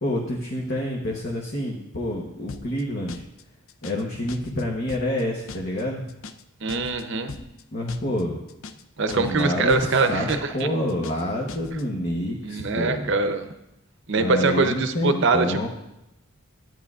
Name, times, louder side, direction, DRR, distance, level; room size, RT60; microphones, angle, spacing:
voice 1, 0.0-3.2 3.8-6.0 7.7-8.4 9.1-10.3 10.5-13.1 14.2-15.7, left 1 dB, 45° left, -2 dB, 1.0 m, -28 dB
sound 1, 2.5-2.8 3.1-3.4 3.7-4.0 4.3-4.6 4.9-5.2 5.5-5.8 6.1-6.4 6.7-7.0 7.3-7.6 7.9-8.2 8.5-8.8 9.1-9.4 9.7-10.0 10.3-10.6 10.9-11.2 11.5-11.8, left 4 dB, 65° left, 0.4 m, -39 dB
voice 2, 6.6-7.3 9.0-10.7 12.4-13.5 14.1-15.7, right 3 dB, 55° right, 8 dB, 0.7 m, -23 dB
13.0 x 9.2 x 2.4 m, 0.89 s
head